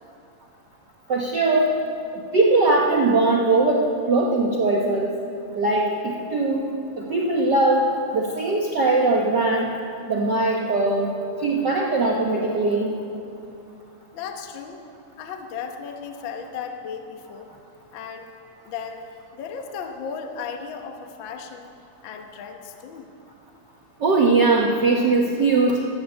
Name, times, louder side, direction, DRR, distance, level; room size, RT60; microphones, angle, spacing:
voice 1, 1.1-1.7 2.3-5.1 5.5-6.6 7.0-7.9 8.1-9.7 10.1-11.1 11.4-12.9 24.0-25.8, right 3 dB, 55° right, -1 dB, 1.2 m, -20 dB
voice 2, 14.1-14.8 15.2-17.5 17.9-18.3 18.6-21.7 22.0-23.1, left 6 dB, 55° left, 4 dB, 1.4 m, -35 dB
13.5 x 13.5 x 7.8 m, 2.5 s
omnidirectional pair, 3.3 m